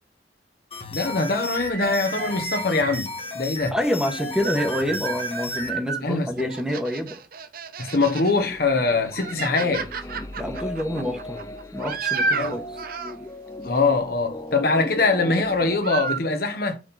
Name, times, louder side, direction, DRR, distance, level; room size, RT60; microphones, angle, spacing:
sound 1, 0.7-5.7, left 3 dB, 35° left, 1.3 m, -34 dB
voice 1, 0.9-3.1 3.3-3.7 6.0-6.5 7.8-9.9 12.4-12.6 13.6-16.8, left 3 dB, 55° left, 1.2 m, -23 dB
sound 2, 1.6-3.0 4.0-6.0 6.4-8.4 8.8-13.2 15.2-15.5 15.8-16.2, right 5 dB, 50° right, 0.6 m, -31 dB
voice 2, 3.7-7.1 10.4-11.4 11.7-12.6, equal, 5° right, 1.2 m, -27 dB
sound 3, 8.2-15.8, left 1 dB, 20° left, 0.6 m, -37 dB
6.2 x 3.8 x 4.1 m
head